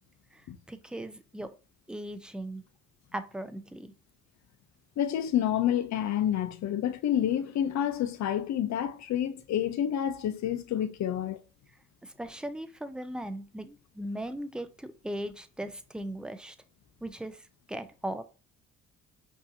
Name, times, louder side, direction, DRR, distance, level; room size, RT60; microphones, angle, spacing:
voice 1, 0.7-1.5 1.9-2.6 3.1-3.9 12.0-16.6 17.0-18.2, right 1 dB, 5° right, 0.5 m, -38 dB
voice 2, 5.0-11.4, left 10 dB, 65° left, 0.7 m, -29 dB
5.4 x 2.8 x 2.7 m
cardioid pair, 90°, 30 cm